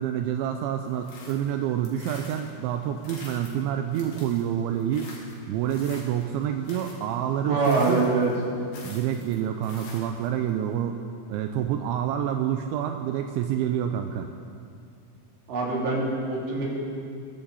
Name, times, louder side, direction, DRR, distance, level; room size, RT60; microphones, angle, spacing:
voice 1, 0.0-5.1 5.5-8.1 8.8-14.3, right 10 dB, 85° right, 6 dB, 2.9 m, -28 dB
sound 1, 0.9-10.5, left 2 dB, 60° left, 4.7 m, -47 dB
voice 2, 7.4-8.3 15.5-16.7, right 3 dB, 65° right, -5 dB, 5.4 m, -24 dB
22.5 x 14.0 x 4.2 m, 2.3 s
omnidirectional pair, 5.6 m